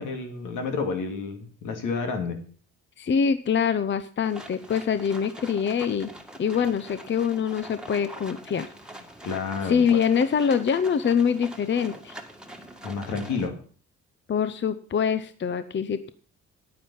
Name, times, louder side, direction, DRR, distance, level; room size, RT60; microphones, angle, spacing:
voice 1, 0.0-2.4 9.2-9.8 12.8-13.5, left 4 dB, 80° left, 4 dB, 2.5 m, -30 dB
voice 2, 3.0-6.1 6.4-8.7 9.7-12.2 14.3-16.1, left 7 dB, 40° left, 12 dB, 0.7 m, -24 dB
sound 1, 4.2-13.5, right 1 dB, 5° right, 1.7 m, -44 dB
9.8 x 8.8 x 5.6 m, 0.43 s
cardioid pair, 90°, 30 cm